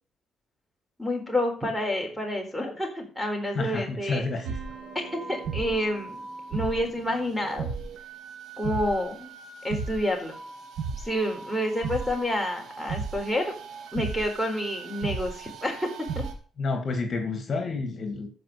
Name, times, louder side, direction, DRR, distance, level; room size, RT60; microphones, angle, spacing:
voice 1, 1.0-4.2 4.9-6.2 6.5-7.7 8.6-9.3 9.6-10.3 11.0-13.5 13.9-15.9 16.2-16.3, left 1 dB, ahead, 0 dB, 4.2 m, -29 dB
voice 2, 3.5-4.6 16.6-18.3, left 3 dB, 45° left, 5 dB, 2.2 m, -29 dB
sound 1, 4.4-16.3, right 5 dB, 75° right, 2.4 m, -36 dB
14.0 x 5.2 x 6.9 m, 0.42 s
cardioid pair, 90°, 0 cm